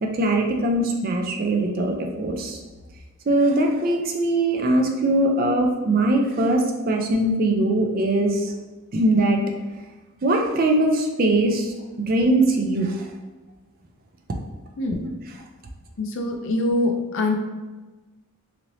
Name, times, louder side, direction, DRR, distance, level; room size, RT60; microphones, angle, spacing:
voice 1, 0.0-2.6 3.3-8.5 8.9-9.4 10.2-13.1, right 1 dB, 40° right, 2 dB, 0.4 m, -21 dB
voice 2, 16.0-17.4, left 2 dB, 55° left, 3 dB, 0.4 m, -24 dB
3.1 x 2.8 x 2.6 m, 1.2 s
head